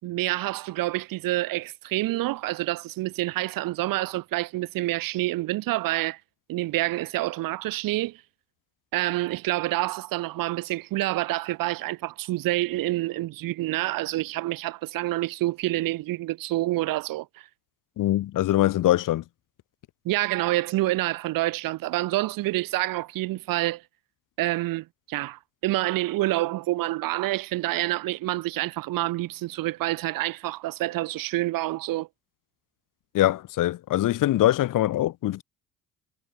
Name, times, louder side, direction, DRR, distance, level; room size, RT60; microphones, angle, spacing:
voice 1, 0.0-6.2 6.5-8.2 8.9-17.5 20.0-23.8 24.4-32.1, right 17 dB, 75° right, 4.5 m, -27 dB
voice 2, 18.0-19.2 33.1-35.4, left 14 dB, 65° left, 2.4 m, -23 dB
supercardioid pair, 75°, 34 cm